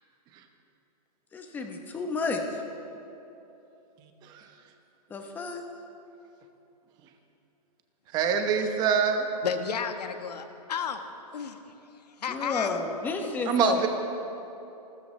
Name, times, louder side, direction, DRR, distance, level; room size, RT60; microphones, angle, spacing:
voice 1, 1.3-2.4 5.1-5.6 12.3-13.9, left 4 dB, 10° left, 4 dB, 0.8 m, -31 dB
voice 2, 8.1-9.3 13.5-13.9, right 7 dB, 20° right, 6 dB, 0.9 m, -24 dB
voice 3, 9.4-11.0 11.3-11.6 12.1-12.8 13.2-13.3, left 7 dB, 75° left, 7 dB, 1.4 m, -32 dB
28.0 x 13.5 x 3.2 m, 2.9 s
hypercardioid pair, 160°, 21 cm